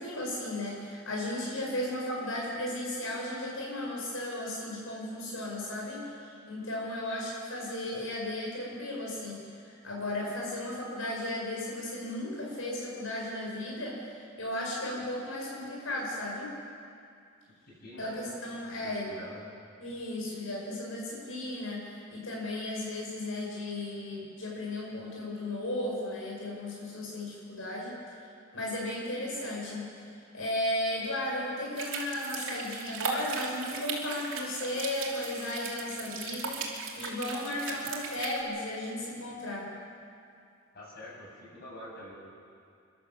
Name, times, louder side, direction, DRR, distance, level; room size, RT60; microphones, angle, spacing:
voice 1, 0.0-14.0 14.4-16.5 18.0-19.1 19.8-27.9 28.5-29.9 30.3-36.6 37.0-39.7, left 1 dB, 80° left, -3 dB, 5.8 m, -35 dB
voice 2, 17.7-18.2 18.7-19.4 35.8-35.9 40.7-42.1, left 1 dB, 50° left, -4 dB, 6.7 m, -46 dB
sound 1, 31.8-38.4, right 4 dB, 70° right, 2.9 m, -38 dB
28.5 x 12.0 x 7.5 m, 2.4 s
head